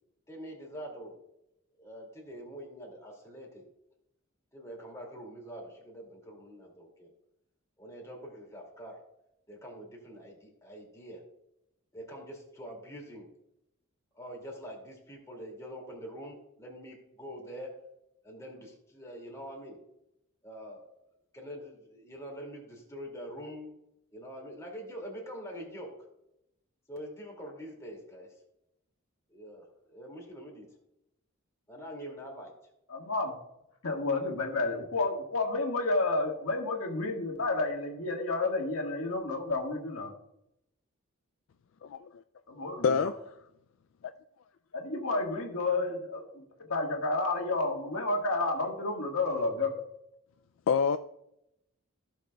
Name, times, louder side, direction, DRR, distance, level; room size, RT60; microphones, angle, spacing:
voice 1, 0.3-1.2 1.8-3.6 4.5-7.1 7.8-9.0 9.5-11.2 11.9-13.3 14.1-17.8 18.2-19.8 20.4-20.9 21.3-23.7 24.1-26.0 26.9-28.3 29.3-30.7 31.7-32.5, equal, 15° left, 2.3 m, -44 dB
voice 2, 32.9-33.4 33.8-40.1 42.5-43.1 44.7-46.4 46.7-49.7, left 2 dB, 85° left, 1.6 m, -30 dB
voice 3, 50.7-51.0, left 6 dB, 65° left, 0.3 m, -26 dB
15.5 x 6.3 x 2.3 m
head